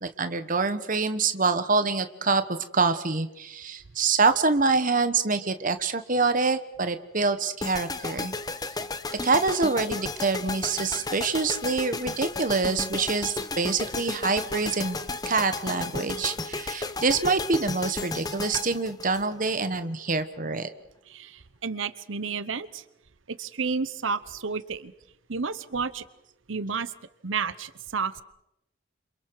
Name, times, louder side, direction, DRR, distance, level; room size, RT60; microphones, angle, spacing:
voice 1, 0.0-8.3 9.2-15.0 15.2-20.7, right 4 dB, 45° right, 10 dB, 1.3 m, -26 dB
sound 1, 7.6-19.8, left 3 dB, 20° left, 1.0 m, -34 dB
voice 2, 21.1-22.8 23.3-24.9 25.3-26.1 26.5-26.9 27.2-28.2, right 5 dB, 80° right, 15 dB, 0.9 m, -31 dB
29.0 x 27.0 x 4.8 m, 0.82 s
head